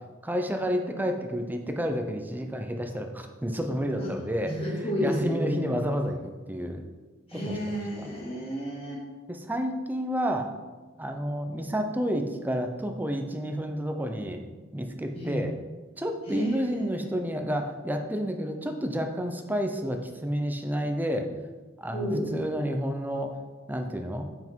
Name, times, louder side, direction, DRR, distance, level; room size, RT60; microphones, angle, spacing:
voice 1, 0.2-4.5 5.0-6.2 6.5-6.8 7.3-7.6 8.0-8.1 9.3-10.5 11.0-14.4 14.7-15.5 16.0-21.3 21.8-23.4 23.7-24.3, equal, 10° right, 5 dB, 0.6 m, -30 dB
voice 2, 4.4-5.7 7.3-9.0 15.1-15.4 16.3-17.0 21.9-22.3, equal, 30° left, -5 dB, 2.5 m, -31 dB
7.6 x 5.8 x 4.5 m, 1.3 s
head